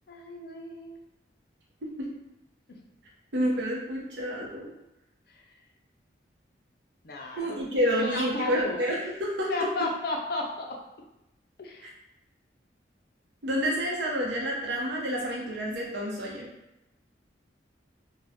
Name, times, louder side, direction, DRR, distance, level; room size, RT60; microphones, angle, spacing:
voice 1, 0.1-1.0 7.0-7.6 8.0-8.8 9.5-10.8 11.6-11.9, left 2 dB, 55° left, 1 dB, 0.5 m, -33 dB
voice 2, 3.3-4.7 7.4-9.5 13.4-16.5, equal, 75° right, -2 dB, 0.7 m, -29 dB
2.5 x 2.2 x 3.5 m, 0.91 s
head